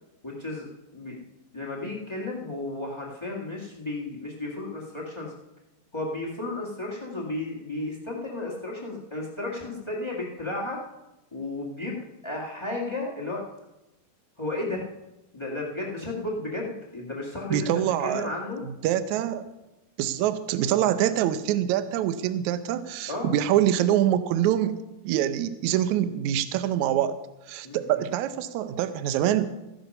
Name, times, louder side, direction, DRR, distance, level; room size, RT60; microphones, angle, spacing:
voice 1, 0.2-1.1 1.5-5.3 5.9-10.8 11.3-11.9 12.2-13.4 14.4-14.8 15.3-17.7 18.0-18.6 23.1-23.3 27.6-27.8, left 2 dB, 50° left, -2 dB, 0.3 m, -33 dB
voice 2, 17.5-18.3 18.6-19.5 20.0-27.2 27.5-29.5, right 11 dB, 75° right, 11 dB, 1.8 m, -25 dB
15.0 x 10.0 x 5.4 m, 0.98 s
omnidirectional pair, 4.1 m